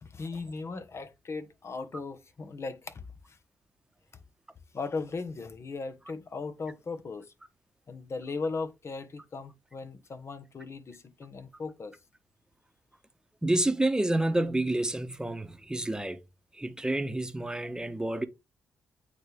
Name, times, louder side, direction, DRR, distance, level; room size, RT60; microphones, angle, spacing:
voice 1, 0.0-3.0 3.3-3.4 4.7-7.3 7.9-12.0, left 4 dB, 45° left, 1.1 m, -37 dB
voice 2, 13.4-16.2 16.6-18.3, right 1 dB, 10° right, 1.1 m, -29 dB
8.6 x 3.3 x 3.4 m
hypercardioid pair, 45°, 7 cm